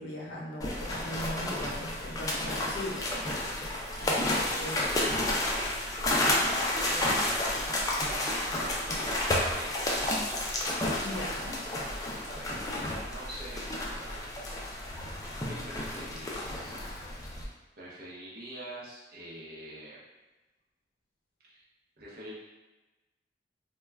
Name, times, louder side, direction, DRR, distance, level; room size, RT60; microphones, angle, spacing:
voice 1, 0.0-3.0 4.0-4.9 11.0-11.6, left 1 dB, 80° left, -3 dB, 0.7 m, -39 dB
sound 1, 0.6-17.4, left 1 dB, 20° left, 0.3 m, -31 dB
voice 2, 3.9-4.5 5.9-9.7 12.1-14.6 15.4-16.9 17.3-17.4 17.8-20.0 21.4-21.6 22.0-22.3, right 1 dB, 55° right, -6 dB, 0.7 m, -45 dB
2.2 x 2.2 x 3.3 m, 1.1 s
head